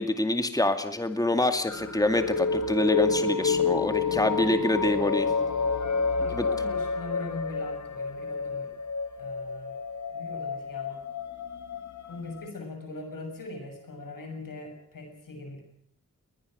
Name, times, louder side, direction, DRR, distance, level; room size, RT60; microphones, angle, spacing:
voice 1, 0.0-5.3 6.4-6.5, left 1 dB, 10° left, 8 dB, 2.2 m, -26 dB
sound 1, 1.7-12.4, left 5 dB, 60° left, 1.8 m, -29 dB
voice 2, 6.2-8.7 9.2-9.7 10.1-11.0 12.0-15.6, left 2 dB, 85° left, 4 dB, 7.0 m, -40 dB
21.0 x 21.0 x 6.5 m, 0.65 s
cardioid pair, 55°, 32 cm